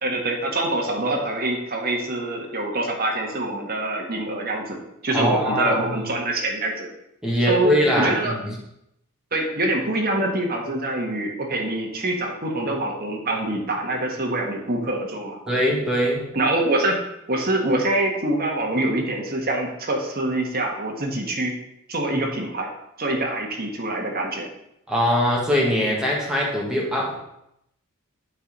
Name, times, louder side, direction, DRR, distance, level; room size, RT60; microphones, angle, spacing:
voice 1, 0.0-4.8 5.0-6.9 7.5-8.3 9.3-15.4 16.3-17.0 17.3-21.5 21.9-22.7 23.0-24.5, right 1 dB, 45° right, 0 dB, 1.6 m, -25 dB
voice 2, 5.1-6.0 7.2-8.6 15.5-16.3 24.9-27.2, equal, 5° right, -4 dB, 1.8 m, -22 dB
8.1 x 4.5 x 5.4 m, 0.80 s
head